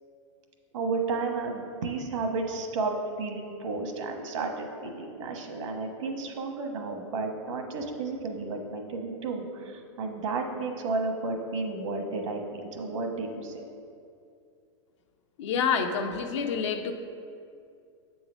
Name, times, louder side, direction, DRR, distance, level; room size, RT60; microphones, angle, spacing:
voice 1, 0.7-12.4 12.7-13.5, right 3 dB, 75° right, 3 dB, 1.1 m, -32 dB
voice 2, 15.4-16.9, left 6 dB, 65° left, 5 dB, 0.7 m, -27 dB
7.3 x 3.9 x 6.2 m, 2.4 s
hypercardioid pair, 130°, 16 cm